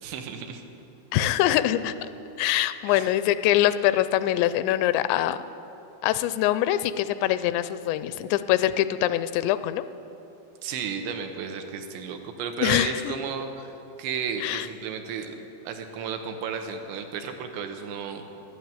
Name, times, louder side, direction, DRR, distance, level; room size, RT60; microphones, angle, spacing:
voice 1, 0.0-0.6 2.9-3.1 10.6-13.7 14.0-15.4 15.7-18.2, right 6 dB, 80° right, 5 dB, 3.2 m, -33 dB
voice 2, 1.1-2.1 2.4-5.4 6.0-9.8 12.6-13.2 14.4-14.7, left 13 dB, 85° left, 13 dB, 2.7 m, -24 dB
11.5 x 11.5 x 9.0 m, 2.9 s
omnidirectional pair, 5.0 m